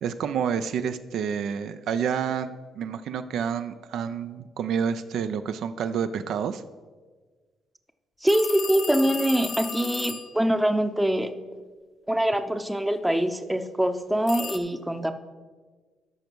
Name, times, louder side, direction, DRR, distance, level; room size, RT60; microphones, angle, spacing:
voice 1, 0.0-6.6, right 7 dB, 75° right, 10 dB, 0.4 m, -29 dB
voice 2, 8.2-11.3 12.1-15.1, right 1 dB, 10° right, 9 dB, 0.6 m, -24 dB
sound 1, 8.3-10.4 14.3-14.6, left 5 dB, 50° left, 0.7 m, -34 dB
13.0 x 5.2 x 4.5 m, 1.4 s
cardioid pair, 90°, 0 cm